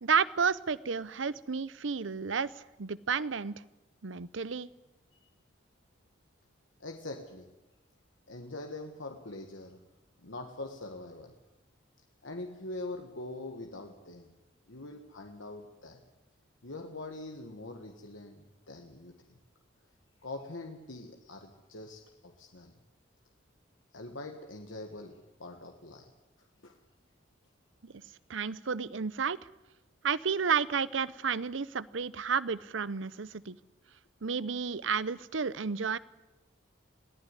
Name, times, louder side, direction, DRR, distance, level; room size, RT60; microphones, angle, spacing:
voice 1, 0.0-2.5 2.8-3.6 4.0-4.7 27.8-27.9 28.3-29.4 30.0-33.6 34.2-36.0, right 6 dB, 75° right, 19 dB, 0.7 m, -31 dB
voice 2, 6.8-7.5 8.3-9.8 10.2-11.3 12.2-14.3 14.7-16.0 16.6-19.2 20.2-22.7 23.9-26.1 26.6-26.8, left 2 dB, 85° left, 4 dB, 1.8 m, -43 dB
22.0 x 15.5 x 9.9 m, 1.0 s
head